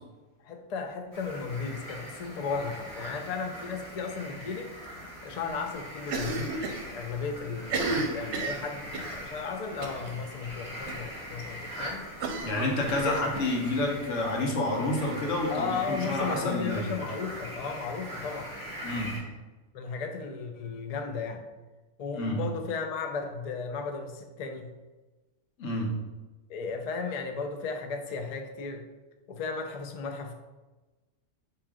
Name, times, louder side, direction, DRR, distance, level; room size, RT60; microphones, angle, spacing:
voice 1, 0.4-4.7 5.2-6.5 6.9-12.1 13.0-13.2 15.5-18.5 19.7-21.5 22.0-24.7 26.5-28.8 29.3-30.3, left 5 dB, 65° left, 5 dB, 0.3 m, -35 dB
sound 1, 1.1-19.2, equal, 15° left, 1.4 m, -41 dB
Cough, 6.0-6.8 7.1-7.2 7.6-9.2 9.8-10.1 10.4-10.5 10.9-11.0 12.2-13.4, right 3 dB, 70° right, 0.9 m, -32 dB
voice 2, 12.4-16.9 18.8-19.1 22.1-22.4 25.6-25.9, left 2 dB, 85° left, 0 dB, 1.2 m, -29 dB
3.6 x 3.0 x 4.8 m, 1.2 s
omnidirectional pair, 1.3 m